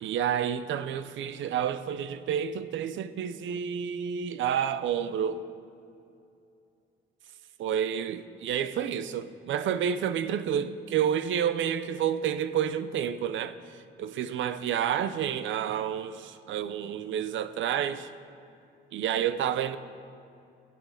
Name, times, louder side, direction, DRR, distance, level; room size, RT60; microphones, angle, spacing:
voice 1, 0.0-5.4 7.6-13.6 14.0-18.1 18.9-19.8, right 9 dB, 75° right, 13 dB, 0.7 m, -29 dB
18.0 x 8.6 x 5.7 m, 2.5 s
cardioid pair, 90°, 20 cm